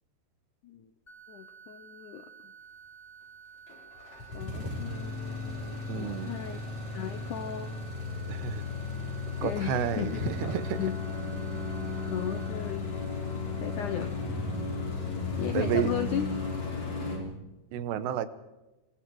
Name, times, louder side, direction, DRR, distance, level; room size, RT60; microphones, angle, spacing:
sound 1, 1.1-12.5, right 7 dB, 20° left, 2.0 m, -52 dB
voice 1, 1.3-2.5 4.3-6.6 6.9-7.7 9.4-11.0 12.1-12.9 13.6-14.1 15.4-16.3, left 10 dB, 80° left, 9 dB, 1.8 m, -36 dB
sound 2, 3.7-17.2, left 3 dB, 45° left, 5.3 m, -35 dB
voice 2, 5.9-6.3 8.3-8.6 9.4-10.8 15.5-15.9 17.7-18.3, right 10 dB, 80° right, 13 dB, 3.1 m, -31 dB
26.5 x 22.0 x 4.7 m, 1.0 s
omnidirectional pair, 4.8 m